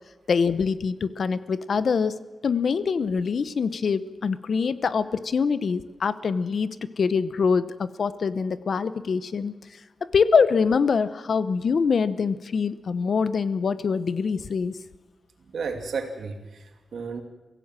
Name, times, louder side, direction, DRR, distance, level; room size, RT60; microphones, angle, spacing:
voice 1, 0.3-9.5 10.0-14.8, left 5 dB, 60° left, 15 dB, 0.9 m, -24 dB
voice 2, 15.5-17.2, right 5 dB, 80° right, 5 dB, 2.8 m, -33 dB
24.0 x 16.5 x 7.5 m, 1.2 s
wide cardioid pair, 155°, 0 cm